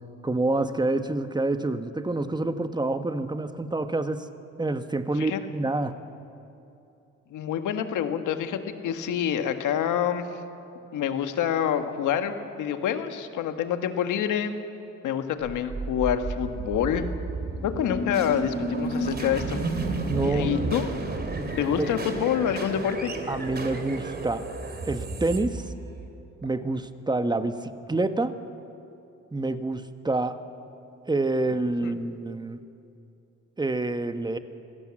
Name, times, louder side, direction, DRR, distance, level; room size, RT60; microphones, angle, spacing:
voice 1, 0.2-4.3 4.6-5.9 20.0-20.8 21.8-21.9 23.3-24.5 24.8-25.7 26.4-28.4 29.3-30.4 31.1-32.6 33.6-34.4, right 2 dB, 15° right, 9 dB, 1.3 m, -27 dB
voice 2, 7.3-10.3 10.9-14.5 15.0-17.1 17.6-19.6 20.2-20.9 21.6-23.1 31.8-31.9, left 9 dB, 85° left, 8 dB, 1.6 m, -27 dB
sound 1, 15.4-26.5, right 2 dB, 30° right, 3.0 m, -32 dB
26.0 x 17.0 x 7.6 m, 2.7 s
cardioid pair, 90°, 30 cm